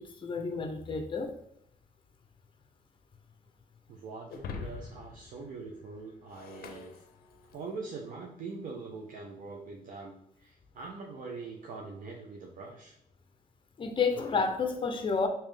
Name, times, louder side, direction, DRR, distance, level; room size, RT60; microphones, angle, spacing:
voice 1, 0.0-1.3 13.8-15.3, left 4 dB, 35° left, 6 dB, 0.6 m, -30 dB
voice 2, 3.9-7.0 7.5-13.0, right 4 dB, 65° right, 0 dB, 0.5 m, -43 dB
Shatter, 4.3-7.8, left 5 dB, 80° left, 0.5 m, -45 dB
3.5 x 2.8 x 3.3 m, 0.74 s
cardioid pair, 105°, 15 cm